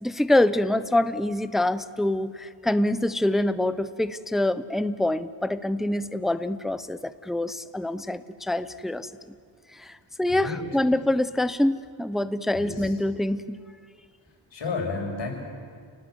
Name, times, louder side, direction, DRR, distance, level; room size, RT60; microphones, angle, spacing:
voice 1, 0.0-9.1 9.8-9.9 10.2-13.6, left 1 dB, ahead, 13 dB, 0.7 m, -25 dB
voice 2, 10.3-10.6 12.5-12.9 14.5-15.3, left 4 dB, 60° left, -1 dB, 6.7 m, -31 dB
30.0 x 19.0 x 8.0 m, 2.1 s
cardioid pair, 95°, 47 cm